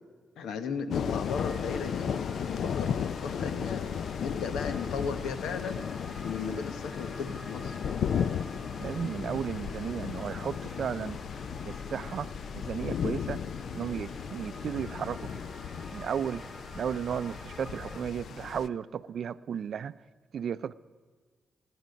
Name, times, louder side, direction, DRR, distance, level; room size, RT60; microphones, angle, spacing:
voice 1, 0.4-2.1 2.4-3.9 4.1-5.8 6.2-7.8, left 5 dB, 85° left, 9 dB, 1.1 m, -36 dB
sound 1, 0.9-18.7, left 7 dB, 70° left, 0.5 m, -35 dB
sound 2, 1.3-18.0, left 1 dB, 30° left, 2.0 m, -46 dB
voice 2, 8.8-11.2 11.6-13.4 13.7-15.3 15.9-16.5 16.7-19.9 20.3-20.7, right 8 dB, 65° right, 16 dB, 0.4 m, -34 dB
27.0 x 10.0 x 5.2 m, 1.5 s
cardioid pair, 70°, 0 cm